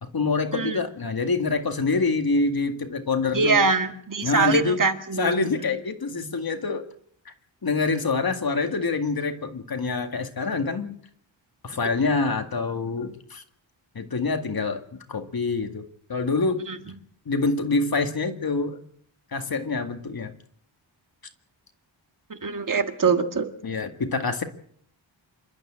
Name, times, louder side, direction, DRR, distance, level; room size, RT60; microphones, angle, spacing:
voice 1, 0.0-3.7 4.2-4.8 5.2-6.9 7.3-7.4 7.6-11.0 11.6-13.4 13.9-16.6 17.3-18.8 19.3-20.3 23.6-24.4, left 3 dB, 50° left, 7 dB, 2.1 m, -26 dB
voice 2, 3.3-5.3 16.7-16.8 22.3-23.5, right 4 dB, 40° right, 7 dB, 1.7 m, -23 dB
27.5 x 12.5 x 8.8 m, 0.63 s
wide cardioid pair, 170°, 47 cm